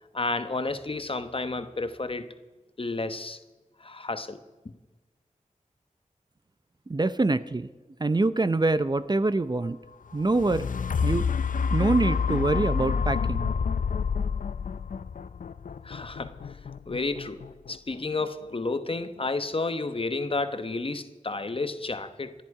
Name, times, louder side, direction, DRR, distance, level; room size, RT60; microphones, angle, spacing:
voice 1, 0.1-2.4 2.8-3.4 3.8-4.4 15.8-16.4 16.9-17.4 17.7-22.3, left 3 dB, 40° left, 1.0 m, -31 dB
voice 2, 6.9-7.7 8.0-9.8 10.1-10.7 11.0-11.3 11.7-13.5, right 2 dB, 30° right, 0.6 m, -25 dB
sound 1, 10.1-18.2 18.7-18.8, left 6 dB, 80° left, 0.5 m, -29 dB
27.0 x 10.5 x 4.8 m
wide cardioid pair, 80°, 14 cm